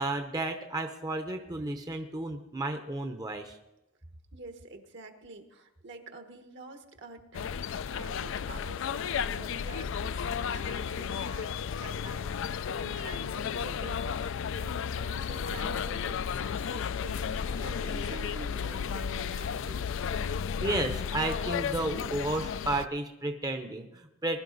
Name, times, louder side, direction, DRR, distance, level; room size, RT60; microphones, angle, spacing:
voice 1, 0.0-3.6 17.6-17.7 20.6-24.4, right 2 dB, 20° right, 6 dB, 0.7 m, -32 dB
voice 2, 4.3-19.9, right 2 dB, 60° right, 6 dB, 1.3 m, -48 dB
sound 1, 7.3-22.9, left 7 dB, 65° left, 0.4 m, -33 dB
20.5 x 11.5 x 4.0 m, 0.92 s
head